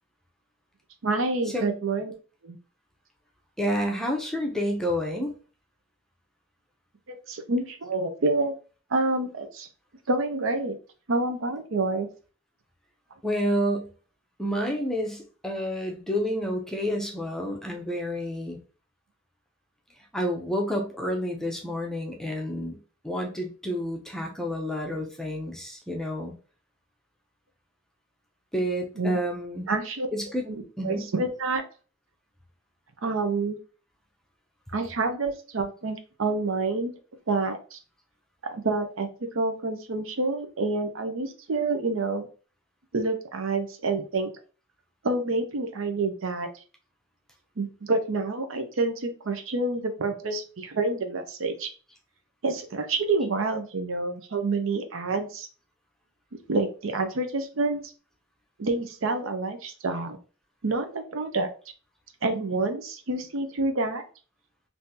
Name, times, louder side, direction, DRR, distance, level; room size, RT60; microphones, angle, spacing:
voice 1, 1.0-2.1 2.4-2.6 7.1-8.5 8.9-9.7 10.1-10.8 11.1-12.1 29.0-29.2 29.7-30.1 30.5-31.6 33.0-33.6 34.7-36.9 37.3-37.8 38.4-42.3 42.9-44.3 45.0-46.5 47.6-51.7 52.4-55.5 56.5-57.8 58.6-60.2 60.6-61.5 62.2-64.0, right 3 dB, 75° right, 7 dB, 0.6 m, -28 dB
voice 2, 3.6-5.3 13.2-13.9 14.4-18.6 20.1-22.8 23.0-26.3 28.5-29.7 30.1-30.4 30.8-31.1, equal, ahead, 0 dB, 0.6 m, -29 dB
3.6 x 2.7 x 2.7 m, 0.37 s
head